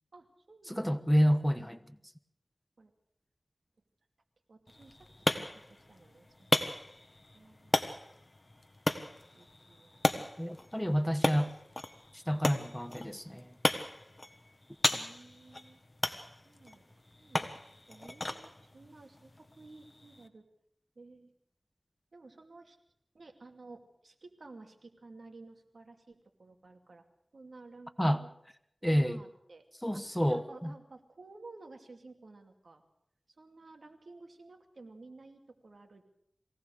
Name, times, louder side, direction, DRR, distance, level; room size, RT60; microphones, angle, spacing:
voice 1, 0.1-1.1 2.8-2.9 4.5-5.1 5.3-6.6 7.3-7.8 9.0-10.2 14.9-15.8 16.4-17.6 17.9-20.4 21.0-21.3 22.1-22.8 23.1-27.0 27.3-28.3 28.8-29.7 29.9-32.8 33.4-36.0, right 3 dB, 85° right, 2.5 m, -54 dB
voice 2, 0.7-1.8 10.4-11.5 12.1-13.5 28.0-28.2 28.8-29.2 29.8-30.7, equal, 5° left, 1.1 m, -29 dB
sound 1, 4.7-20.3, left 2 dB, 40° left, 1.5 m, -36 dB
23.0 x 17.5 x 6.5 m
wide cardioid pair, 60°, 0 cm